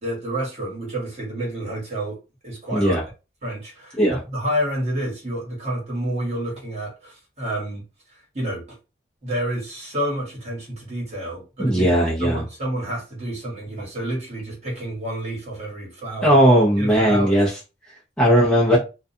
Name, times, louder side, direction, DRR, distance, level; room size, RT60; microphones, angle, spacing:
voice 1, 0.0-2.2 2.4-3.0 3.4-7.9 8.3-8.6 9.2-11.9 12.2-16.4 16.8-17.4, right 1 dB, 40° right, 1.3 m, -29 dB
voice 2, 2.7-3.0 4.0-4.2 11.6-12.5 16.2-17.5 18.2-18.8, equal, 5° left, 0.6 m, -17 dB
2.4 x 2.2 x 2.6 m
head